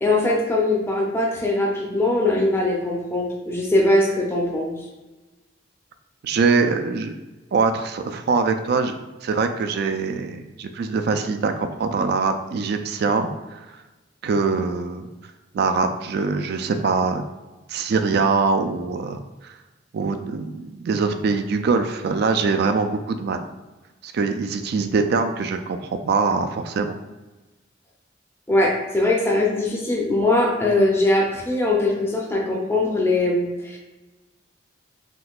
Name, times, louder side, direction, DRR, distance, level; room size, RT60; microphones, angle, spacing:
voice 1, 0.0-4.8 28.5-33.8, left 2 dB, 15° left, -1 dB, 0.5 m, -21 dB
voice 2, 6.2-7.1 7.5-13.6 14.2-15.1 15.5-17.2 17.7-19.2 19.9-23.4 24.0-25.8 26.0-27.0, right 4 dB, 60° right, 7 dB, 0.3 m, -23 dB
3.6 x 2.7 x 2.3 m, 1.1 s
head